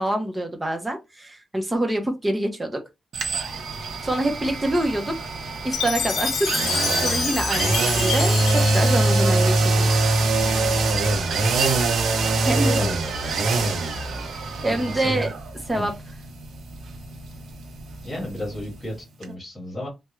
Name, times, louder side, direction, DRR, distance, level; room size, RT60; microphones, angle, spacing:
voice 1, 0.0-2.8 4.0-5.2 5.6-9.9 12.5-12.8 14.6-15.3 15.7-15.9, right 1 dB, 10° right, 0.7 m, -26 dB
sound 1, 3.1-18.9 19.2-19.3, right 2 dB, 80° right, 0.7 m, -24 dB
Chime, 5.7-10.0, left 6 dB, 70° left, 0.5 m, -28 dB
voice 2, 12.4-13.2 14.6-15.3 15.7-15.9 18.0-19.9, left 1 dB, 10° left, 1.6 m, -32 dB
3.5 x 2.2 x 3.1 m
wide cardioid pair, 165°, 0 cm